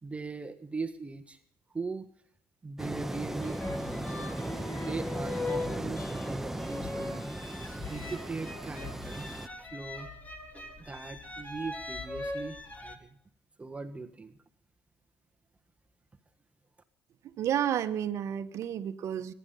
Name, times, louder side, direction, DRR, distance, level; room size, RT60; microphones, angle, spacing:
voice 1, 0.0-1.4 1.7-2.1 2.6-3.9 4.7-7.2 7.8-10.1 10.8-13.2 13.6-14.3, right 4 dB, 20° right, 6 dB, 1.4 m, -40 dB
sound 1, 2.8-9.5, right 1 dB, 5° right, 1.1 m, -37 dB
sound 2, 3.4-13.0, left 2 dB, 25° left, 3.7 m, -40 dB
voice 2, 17.4-19.3, right 10 dB, 60° right, 11 dB, 1.3 m, -31 dB
23.0 x 11.0 x 5.6 m, 0.65 s
hypercardioid pair, 65°, 6 cm